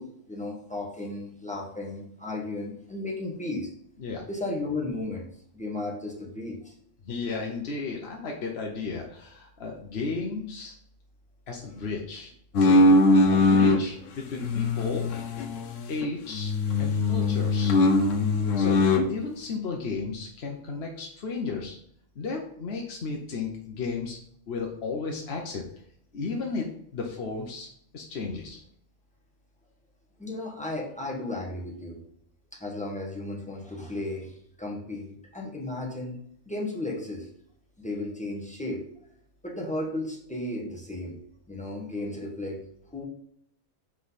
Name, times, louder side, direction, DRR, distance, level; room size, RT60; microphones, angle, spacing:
voice 1, 0.0-3.7 4.3-5.2 5.5-6.7 11.7-11.8 30.2-32.0 32.6-36.2 36.4-37.3 37.8-38.8 39.4-41.2 41.5-42.6 42.9-43.0, left 2 dB, 5° left, -3 dB, 1.6 m, -34 dB
voice 2, 7.0-10.7 11.5-12.3 12.6-13.0 13.3-15.1 15.9-16.5 16.8-17.8 18.6-18.8 19.1-21.7 22.2-24.2 24.5-25.6 26.1-27.7 27.9-28.6, left 4 dB, 60° left, 0 dB, 1.1 m, -34 dB
sound 1, 12.5-13.8 14.3-16.1 16.3-19.1, left 2 dB, 80° left, 1.1 m, -21 dB
5.8 x 5.3 x 4.1 m, 0.67 s
omnidirectional pair, 1.3 m